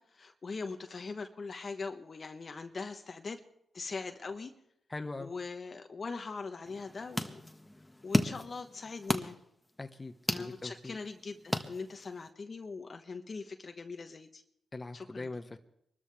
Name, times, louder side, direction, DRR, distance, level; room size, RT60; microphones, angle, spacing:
voice 1, 0.0-3.4 3.7-4.5 5.2-7.4 8.0-9.4 10.3-14.4 14.9-15.3, left 4 dB, 50° left, 6 dB, 1.2 m, -41 dB
voice 2, 4.9-5.3 9.8-11.0 14.7-15.6, left 2 dB, 30° left, 7 dB, 1.3 m, -41 dB
sound 1, 6.7-12.3, left 1 dB, 10° left, 1.6 m, -36 dB
24.0 x 13.0 x 3.5 m, 0.75 s
supercardioid pair, 50°, 0 cm